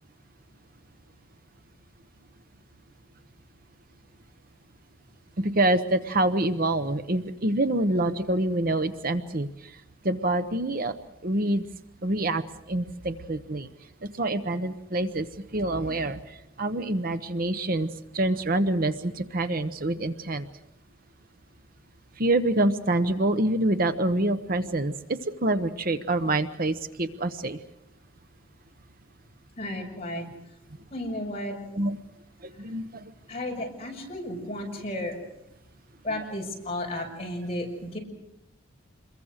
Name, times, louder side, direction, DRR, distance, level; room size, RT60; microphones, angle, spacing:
voice 1, 5.4-9.8 10.0-10.9 11.2-11.6 12.0-13.7 14.0-15.3 15.5-20.5 22.2-27.6 31.7-32.0 32.4-33.1, right 1 dB, 45° right, 10 dB, 0.9 m, -26 dB
voice 2, 29.6-30.3 30.9-31.6 33.3-35.2 36.0-38.0, left 1 dB, 30° left, -1 dB, 6.1 m, -33 dB
27.5 x 22.5 x 6.5 m, 0.86 s
head